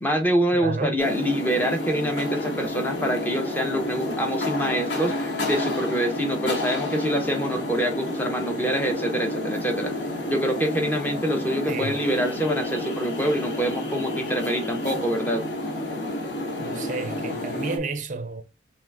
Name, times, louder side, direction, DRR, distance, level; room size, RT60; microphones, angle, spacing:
voice 1, 0.0-9.9 10.3-15.5, equal, 10° left, 0.6 m, -25 dB
voice 2, 0.5-1.2 11.7-12.0 16.6-18.4, right 3 dB, 40° right, 0.5 m, -32 dB
sound 1, 1.0-17.8, left 1 dB, 75° left, 1.2 m, -30 dB
3.6 x 3.1 x 3.4 m
head